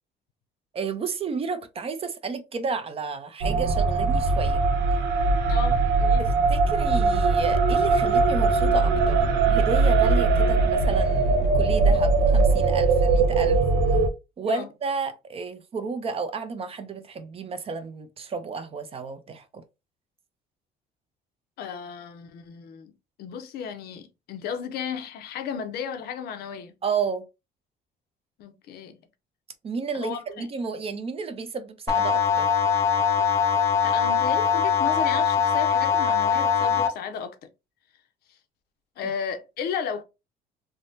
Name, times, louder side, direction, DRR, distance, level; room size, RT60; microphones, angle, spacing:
voice 1, 0.7-4.6 6.2-9.2 9.5-13.6 13.9-14.0 14.4-19.6 26.8-27.3 29.6-32.5, right 5 dB, 35° right, 0.5 m, -32 dB
sound 1, 3.4-14.1, right 3 dB, 80° right, 0.6 m, -21 dB
voice 2, 5.5-6.3 14.5-14.7 21.6-22.9 23.2-26.7 28.4-29.0 29.9-30.5 33.8-37.5 38.3-38.4 39.0-40.0, left 7 dB, 70° left, 0.6 m, -34 dB
sound 2, 31.9-36.9, left 7 dB, 15° left, 0.6 m, -22 dB
3.4 x 2.1 x 2.6 m
cardioid pair, 110°, 17 cm